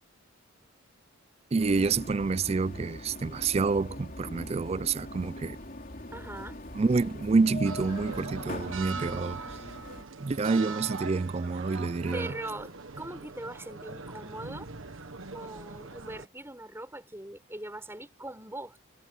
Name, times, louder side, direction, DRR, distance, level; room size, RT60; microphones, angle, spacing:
voice 1, 1.5-5.6 6.7-9.4 10.2-12.4, right 4 dB, 30° right, 0.3 m, -28 dB
sound 1, 1.6-10.0, left 1 dB, 40° left, 3.6 m, -42 dB
voice 2, 6.1-6.6 12.1-14.7 15.3-18.8, right 1 dB, 10° right, 5.3 m, -41 dB
sound 2, 7.6-16.3, right 4 dB, 75° right, 1.5 m, -41 dB
head